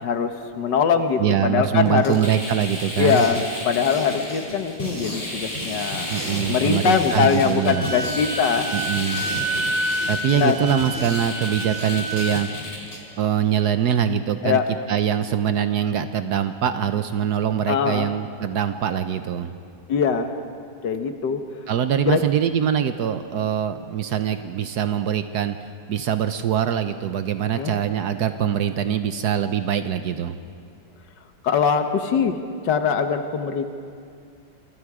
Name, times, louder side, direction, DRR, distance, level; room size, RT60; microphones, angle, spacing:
voice 1, 0.0-2.1 3.0-6.2 6.5-8.7 9.6-9.7 10.3-10.6 14.4-14.7 17.7-18.1 19.9-20.3 20.8-21.4 22.1-22.2 27.6-27.7 31.4-32.4 32.6-33.7, left 6 dB, 90° left, 7 dB, 1.8 m, -22 dB
voice 2, 1.2-3.2 6.1-7.9 8.7-9.2 10.1-12.5 13.2-14.6 14.9-19.5 21.7-25.6 25.9-30.4, right 9 dB, 70° right, 9 dB, 1.3 m, -23 dB
sound 1, 1.9-13.0, equal, 20° left, 3.9 m, -32 dB
Wind instrument woodwind instrument, 7.6-12.3, right 1 dB, 40° right, 3.2 m, -29 dB
28.0 x 25.0 x 4.9 m, 2.3 s
omnidirectional pair, 1.8 m